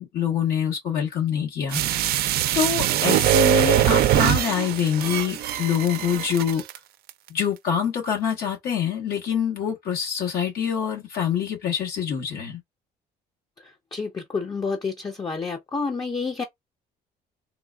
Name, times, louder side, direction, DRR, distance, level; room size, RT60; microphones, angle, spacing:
voice 1, 0.0-2.2 2.5-6.6 7.3-12.6, left 8 dB, 70° left, 1.1 m, -25 dB
sound 1, 1.7-6.8 7.1-7.2, right 12 dB, 65° right, 0.5 m, -22 dB
voice 2, 13.9-16.4, left 4 dB, 25° left, 0.7 m, -29 dB
3.7 x 2.4 x 2.3 m
cardioid pair, 110°, 17 cm